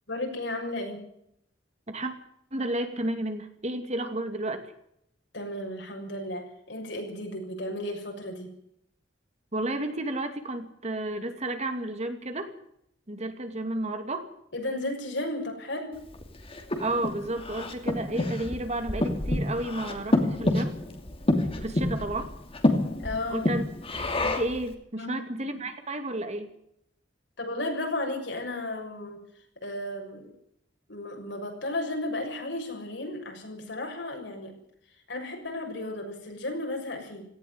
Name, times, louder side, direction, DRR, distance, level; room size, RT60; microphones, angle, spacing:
voice 1, 0.1-1.0 5.3-8.5 14.5-15.9 23.0-23.5 24.9-25.2 27.4-29.2 29.6-30.3 30.9-34.5 35.1-37.3, left 1 dB, 65° left, 2 dB, 6.7 m, -34 dB
voice 2, 2.5-4.6 9.5-12.5 13.1-14.3 16.8-20.7 21.6-22.3 23.3-23.6 24.2-26.5, right 1 dB, 40° right, 7 dB, 2.5 m, -32 dB
Breathing, 16.1-24.6, left 1 dB, 30° left, 2.8 m, -28 dB
17.5 x 15.5 x 9.6 m, 0.74 s
head